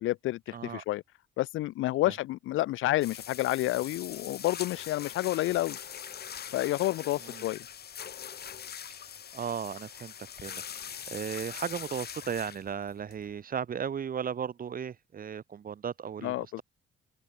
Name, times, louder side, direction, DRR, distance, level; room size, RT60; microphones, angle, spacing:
voice 1, 0.0-1.0 1.4-5.8 6.5-7.6 16.2-16.6, left 16 dB, 85° left, 0.8 m, -29 dB
voice 2, 0.5-0.8 7.3-7.4 9.3-16.6, right 7 dB, 45° right, 1.1 m, -36 dB
sound 1, 3.0-13.4, left 8 dB, 55° left, 1.7 m, -42 dB
open air
cardioid pair, 90°, 20 cm